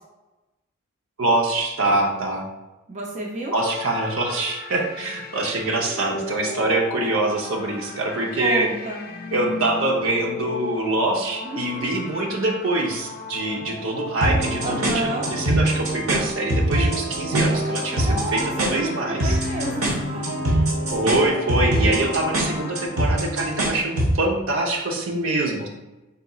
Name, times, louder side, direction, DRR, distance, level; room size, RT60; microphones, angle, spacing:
voice 1, 1.2-2.4 3.5-8.7 9.3-19.4 20.9-25.7, right 2 dB, 70° right, 0 dB, 0.8 m, -24 dB
voice 2, 2.9-3.6 8.4-9.0 11.4-11.9 14.6-15.3 18.0-18.9 19.2-20.3 24.9-25.3, right 2 dB, 35° right, -2 dB, 0.6 m, -30 dB
sound 1, 3.6-22.9, left 3 dB, 45° left, 0.4 m, -36 dB
sound 2, 14.2-24.2, right 1 dB, 90° right, 1.1 m, -24 dB
4.0 x 3.9 x 2.3 m, 1.0 s
head